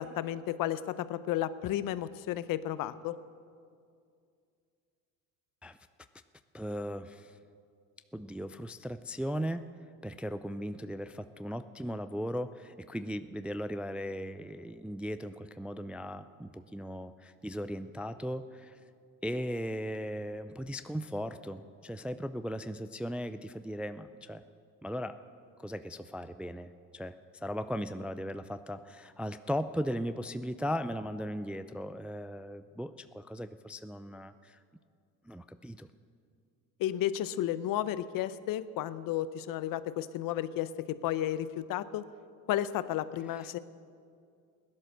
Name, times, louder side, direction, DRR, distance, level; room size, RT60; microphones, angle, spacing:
voice 1, 0.0-3.2 36.8-42.0 42.5-43.6, left 12 dB, 55° left, 15 dB, 0.7 m, -33 dB
voice 2, 6.5-7.4 8.1-9.6 10.0-18.8 19.2-24.4 24.8-25.1 25.6-34.6 35.3-35.9 43.4-43.6, equal, 5° right, 11 dB, 0.3 m, -37 dB
16.5 x 11.0 x 6.4 m, 2.3 s
supercardioid pair, 80°, 39 cm